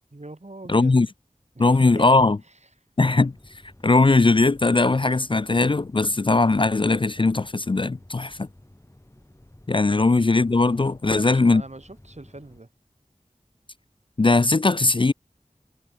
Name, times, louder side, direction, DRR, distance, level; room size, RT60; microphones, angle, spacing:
voice 1, 0.1-1.1 1.5-2.1 2.4-2.6 11.0-12.7, right 2 dB, 55° right, 3.9 m, -42 dB
voice 2, 0.7-1.1 1.6-2.4 3.0-3.3 3.8-8.5 9.7-11.6 14.2-15.1, left 3 dB, 40° left, 0.4 m, -19 dB
sound 1, 3.2-12.6, left 1 dB, 20° left, 2.3 m, -52 dB
wide cardioid pair, 40°, 14 cm